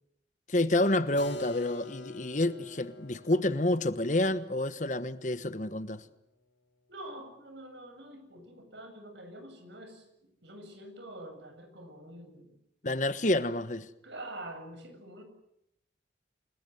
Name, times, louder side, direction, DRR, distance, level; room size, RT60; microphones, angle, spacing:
voice 1, 0.5-6.0 12.8-13.9, left 1 dB, 40° left, 1.2 m, -28 dB
Keyboard (musical), 1.2-6.8, left 4 dB, 75° left, 3.1 m, -48 dB
voice 2, 6.9-10.0 10.4-12.5 14.0-15.2, right 1 dB, 70° right, 7.6 m, -46 dB
28.5 x 20.0 x 7.9 m
head